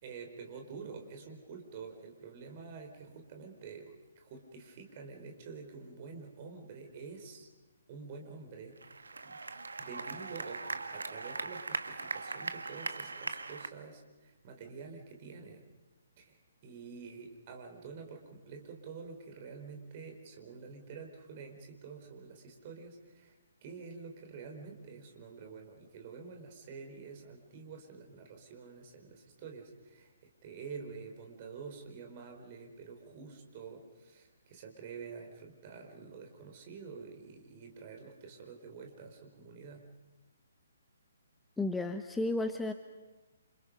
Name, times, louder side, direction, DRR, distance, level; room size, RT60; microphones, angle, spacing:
voice 1, 0.0-7.5 7.9-9.4 9.8-10.6 10.9-15.6 16.2-23.4 23.6-39.9, right 5 dB, 35° right, 3 dB, 4.5 m, -48 dB
sound 1, 8.8-13.7, right 3 dB, 65° right, 1.5 m, -40 dB
voice 2, 41.6-42.7, left 2 dB, 5° left, 8 dB, 0.9 m, -32 dB
29.0 x 27.5 x 5.4 m, 1.2 s
figure-of-eight pair, 130°, 0 cm